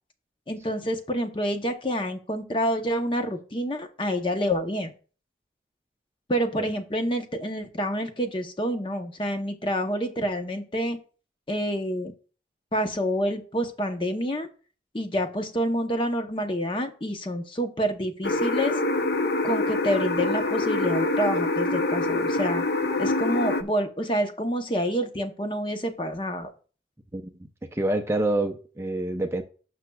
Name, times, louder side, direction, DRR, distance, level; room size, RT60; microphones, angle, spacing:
voice 1, 0.5-4.9 6.3-11.0 11.5-12.1 12.7-14.5 14.9-18.8 19.4-22.6 23.0-26.5, equal, 30° left, 0.8 m, -28 dB
sound 1, 18.2-23.6, left 2 dB, 65° left, 0.7 m, -25 dB
voice 2, 27.7-29.4, right 2 dB, 15° right, 0.5 m, -27 dB
12.5 x 5.9 x 2.3 m
head